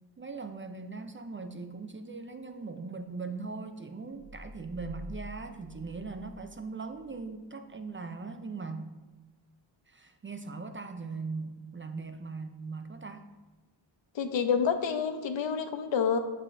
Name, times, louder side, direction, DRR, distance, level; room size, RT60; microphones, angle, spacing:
voice 1, 0.2-8.9 9.9-13.3, right 4 dB, 30° right, 8 dB, 0.4 m, -40 dB
sound 1, 4.1-6.7 7.0-7.1, left 1 dB, 55° right, 1.5 m, -46 dB
voice 2, 14.1-16.2, left 6 dB, 70° left, 9 dB, 0.6 m, -28 dB
6.3 x 6.2 x 2.6 m, 1.2 s
cardioid pair, 65°, 46 cm